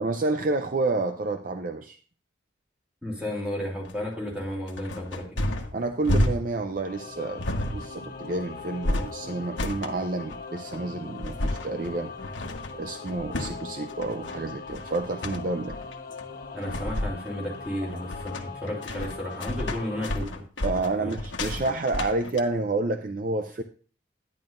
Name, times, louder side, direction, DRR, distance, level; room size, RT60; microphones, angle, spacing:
voice 1, 0.0-2.0 5.7-7.4 7.7-12.1 12.7-15.8 20.6-23.6, right 2 dB, 45° right, 6 dB, 0.5 m, -29 dB
voice 2, 3.0-5.4 16.5-20.4 21.0-21.1, left 1 dB, 5° right, -3 dB, 3.0 m, -33 dB
sound 1, 3.8-22.4, left 1 dB, 70° left, 1.2 m, -31 dB
Singing / Musical instrument, 6.8-20.2, left 4 dB, 50° left, 1.1 m, -41 dB
10.5 x 10.5 x 2.6 m, 0.39 s
head